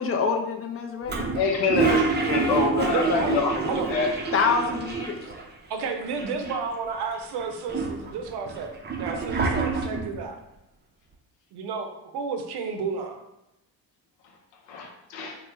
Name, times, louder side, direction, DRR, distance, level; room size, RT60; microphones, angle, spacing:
voice 1, 0.0-1.2 4.3-5.2, left 5 dB, 35° left, 2 dB, 0.5 m, -26 dB
Toilet flush, 1.1-5.4 5.7-5.8 6.0-6.8 7.4-10.2, right 4 dB, 25° right, 0.5 m, -27 dB
voice 2, 1.3-3.6 3.9-4.1 14.7-15.4, left 5 dB, 80° left, 1 dB, 0.6 m, -26 dB
voice 3, 2.9-3.4 3.7-3.9 5.7-8.7 9.0-10.4 11.5-13.2, right 5 dB, 65° right, 5 dB, 0.6 m, -31 dB
3.0 x 2.1 x 3.3 m, 0.85 s
supercardioid pair, 75°, 42 cm